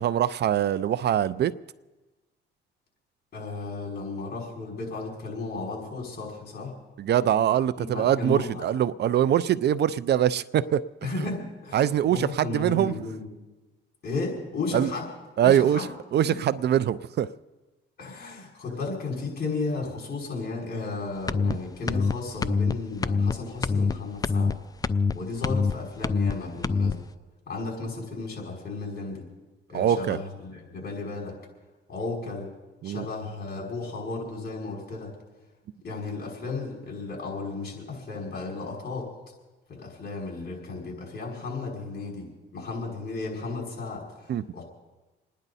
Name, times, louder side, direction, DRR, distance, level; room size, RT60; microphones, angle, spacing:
voice 1, 0.0-1.5 7.0-10.8 11.2-11.3 11.7-12.9 14.7-14.9 15.4-15.9 16.1-17.3 29.7-30.2 32.8-33.1 44.3-44.4, right 10 dB, 55° right, 0.5 m, -23 dB
voice 2, 3.3-6.7 7.8-8.7 11.0-13.3 14.0-15.1 15.4-15.9 16.2-16.4 18.0-24.5 25.1-27.0 27.5-29.2 29.7-31.4 31.9-32.5 32.8-35.1 35.8-39.1 39.7-44.6, left 3 dB, 50° left, 5.6 m, -34 dB
sound 1, 21.3-21.5 21.9-22.1 22.4-22.7 23.0-23.3 23.6-23.9 24.2-24.5 24.8-25.1 25.4-25.7 26.0-26.3 26.6-26.9, left 4 dB, 20° left, 0.4 m, -24 dB
28.0 x 10.5 x 4.1 m
cardioid pair, 90°, 20 cm